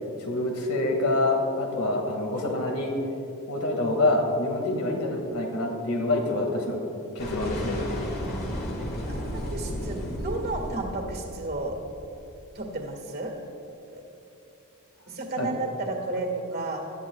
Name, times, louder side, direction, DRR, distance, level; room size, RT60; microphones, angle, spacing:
voice 1, 0.3-2.9 3.5-6.8 7.2-7.9 15.4-15.5, left 2 dB, 90° left, 1 dB, 2.1 m, -26 dB
sound 1, 7.2-12.3, equal, 45° left, 1.8 m, -34 dB
voice 2, 8.1-8.6 9.1-11.8 12.5-13.4 13.9-14.0 15.1-16.9, right 2 dB, 50° right, 2 dB, 1.8 m, -33 dB
18.0 x 12.5 x 2.4 m, 2.8 s
head